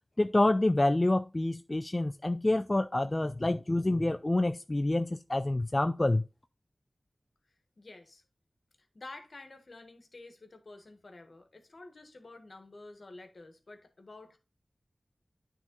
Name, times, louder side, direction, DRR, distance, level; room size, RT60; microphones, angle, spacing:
voice 1, 0.2-6.2, left 2 dB, 35° left, 0.4 m, -27 dB
voice 2, 7.8-8.2 8.9-14.4, left 2 dB, 65° left, 1.4 m, -50 dB
9.3 x 3.7 x 3.9 m
wide cardioid pair, 50°, 0 cm